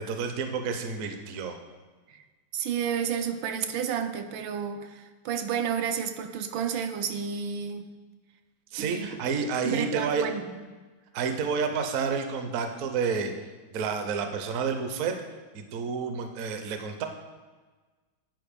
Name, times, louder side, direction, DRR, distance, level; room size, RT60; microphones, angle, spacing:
voice 1, 0.0-1.6 8.7-10.3 11.1-13.3 13.7-15.1 15.5-17.1, right 5 dB, 60° right, 6 dB, 0.9 m, -30 dB
voice 2, 2.5-7.9 8.8-9.1 9.6-10.6, right 7 dB, 80° right, 7 dB, 1.4 m, -31 dB
9.3 x 4.6 x 5.1 m, 1.3 s
omnidirectional pair, 2.1 m